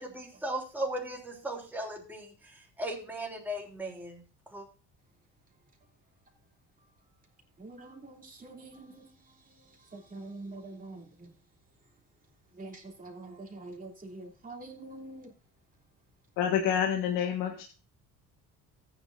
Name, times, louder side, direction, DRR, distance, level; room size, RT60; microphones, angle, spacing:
voice 1, 0.0-4.2 4.5-4.7, right 1 dB, 5° right, 3.4 m, -37 dB
voice 2, 7.6-11.3 12.5-15.3, right 2 dB, 25° right, 3.0 m, -46 dB
voice 3, 16.4-17.6, left 8 dB, 80° left, 1.6 m, -28 dB
14.5 x 9.3 x 2.7 m
cardioid pair, 100°, 31 cm